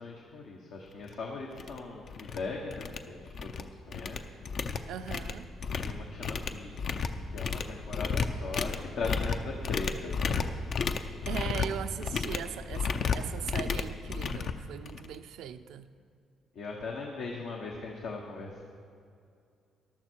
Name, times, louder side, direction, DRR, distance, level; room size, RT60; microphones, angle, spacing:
voice 1, 0.0-4.2 5.7-7.0 7.3-10.9 16.5-18.6, left 3 dB, 75° left, -1 dB, 1.3 m, -39 dB
sound 1, 1.0-1.1 1.6-1.8 2.1-2.4 2.7-3.6 3.9-15.1, left 5 dB, 60° left, 0.7 m, -33 dB
voice 2, 4.8-5.5 11.3-15.9, right 9 dB, 85° right, 10 dB, 0.5 m, -39 dB
13.5 x 12.0 x 4.6 m, 2.4 s
cardioid pair, 90°, 0 cm